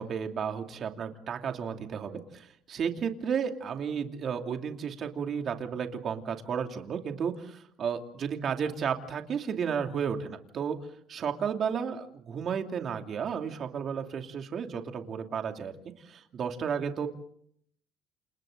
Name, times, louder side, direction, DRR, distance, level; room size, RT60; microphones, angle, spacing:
voice 1, 0.0-10.8 11.1-15.7 16.0-17.1, right 7 dB, 45° right, 5 dB, 2.7 m, -33 dB
29.0 x 29.0 x 3.9 m, 0.64 s
cardioid pair, 135°, 0 cm